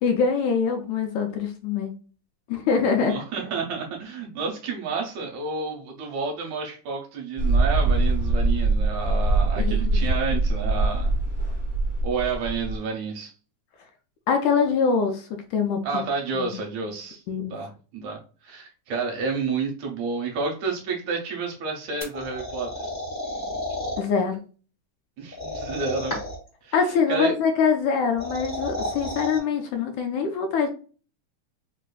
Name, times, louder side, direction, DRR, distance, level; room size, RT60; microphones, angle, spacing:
voice 1, 0.0-1.9 2.5-3.1 9.6-10.0 14.3-16.0 16.3-16.6 17.3-17.5 24.0-24.4 26.7-30.7, left 5 dB, 80° left, 4 dB, 1.8 m, -24 dB
voice 2, 2.9-11.1 12.0-13.3 15.8-17.2 17.5-22.7 25.2-26.2 26.6-26.8 27.1-27.3, right 4 dB, 75° right, 1 dB, 1.9 m, -30 dB
Mechanical fan, 7.4-12.8, right 2 dB, 25° right, 0.8 m, -23 dB
sound 1, 22.0-24.0 25.3-26.5 27.9-29.4, left 1 dB, 55° left, 0.7 m, -32 dB
4.9 x 2.5 x 2.3 m, 0.37 s
omnidirectional pair, 3.5 m